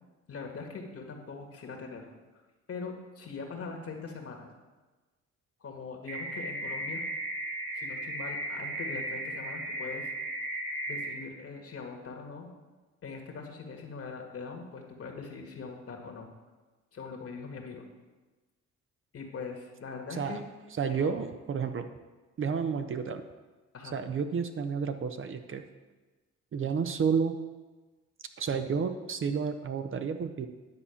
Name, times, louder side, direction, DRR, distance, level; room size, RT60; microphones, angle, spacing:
voice 1, 0.3-2.2 2.7-4.5 5.6-7.0 7.7-10.1 10.9-12.5 13.0-16.3 16.9-17.9 19.1-20.4 20.9-21.2 23.7-23.9, left 4 dB, 50° left, 3 dB, 1.7 m, -42 dB
sound 1, 6.1-11.1, right 1 dB, 80° right, 2.3 m, -35 dB
voice 2, 20.1-20.4 20.8-21.9 22.4-23.2 23.9-25.6 26.5-27.4 28.4-30.5, right 6 dB, 45° right, 8 dB, 0.7 m, -31 dB
9.8 x 4.2 x 7.0 m, 1.2 s
cardioid pair, 90°, 30 cm